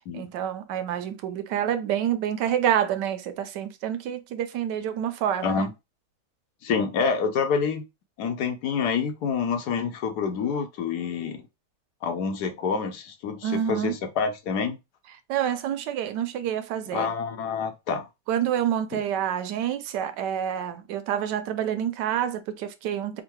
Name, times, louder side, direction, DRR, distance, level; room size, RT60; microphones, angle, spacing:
voice 1, 0.1-5.7 13.4-14.0 15.3-17.1 18.3-23.2, right 9 dB, 90° right, 1.3 m, -28 dB
voice 2, 6.6-7.8 8.2-11.4 12.0-14.8 16.9-18.1 18.9-19.0, left 6 dB, 70° left, 1.3 m, -27 dB
3.7 x 2.3 x 4.5 m
omnidirectional pair, 1.8 m